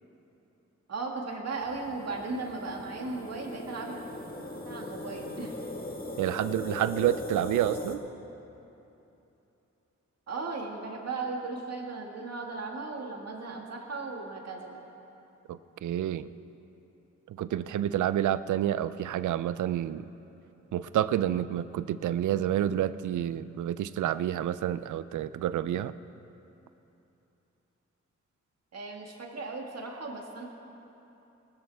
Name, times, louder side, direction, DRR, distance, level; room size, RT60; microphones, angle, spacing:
voice 1, 0.9-4.0 4.6-5.6 10.3-14.8 28.7-30.4, right 3 dB, 60° right, 0 dB, 2.0 m, -36 dB
sound 1, 1.6-8.0, left 2 dB, 30° left, 1.5 m, -39 dB
voice 2, 6.2-8.0 15.5-16.3 17.3-20.1 20.7-25.9, right 11 dB, 90° right, 15 dB, 0.5 m, -29 dB
19.5 x 13.5 x 3.5 m, 3.0 s
cardioid pair, 95°, 29 cm